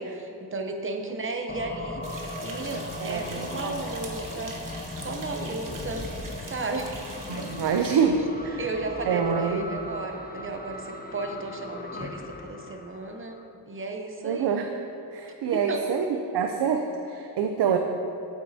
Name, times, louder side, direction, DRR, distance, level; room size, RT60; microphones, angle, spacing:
voice 1, 0.0-4.6 5.0-6.1 6.5-7.5 8.0-8.1 8.6-14.5 15.5-16.0, right 3 dB, 30° right, 4 dB, 0.7 m, -34 dB
sound 1, 1.5-13.5, left 2 dB, 25° left, 0.4 m, -38 dB
sound 2, 2.0-8.0, right 3 dB, 55° right, 1.2 m, -43 dB
voice 2, 3.0-3.8 7.3-8.7 9.0-9.7 14.2-14.7 15.1-17.8, right 6 dB, 85° right, 4 dB, 0.5 m, -26 dB
8.7 x 8.0 x 2.7 m, 2.8 s
wide cardioid pair, 95°, 39 cm